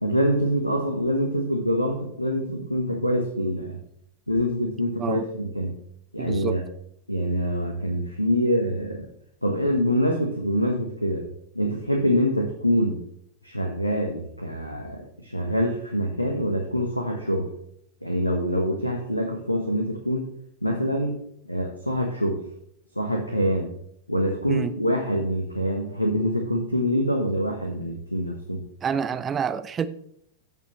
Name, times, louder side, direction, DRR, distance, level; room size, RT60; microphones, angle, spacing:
voice 1, 0.0-3.8 4.3-5.8 6.1-6.6 7.1-9.1 9.4-11.3 11.5-13.0 13.4-17.5 18.0-20.3 20.6-21.2 21.4-22.4 22.9-23.7 24.1-28.6, equal, 90° left, 3 dB, 1.2 m, -25 dB
voice 2, 6.2-6.6 24.5-24.7 28.8-29.9, right 7 dB, 25° right, 12 dB, 0.7 m, -28 dB
15.0 x 7.1 x 3.2 m, 0.70 s
figure-of-eight pair, 90°, 0 cm